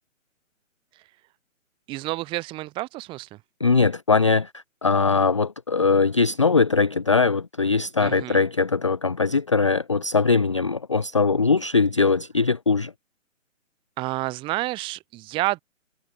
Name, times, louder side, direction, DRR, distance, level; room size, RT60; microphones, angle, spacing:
voice 1, 1.9-3.4 8.0-8.5 14.0-15.6, right 18 dB, 15° right, 1.9 m, -29 dB
voice 2, 3.6-12.9, left 4 dB, 25° left, 0.5 m, -21 dB
hypercardioid pair, 160°, 39 cm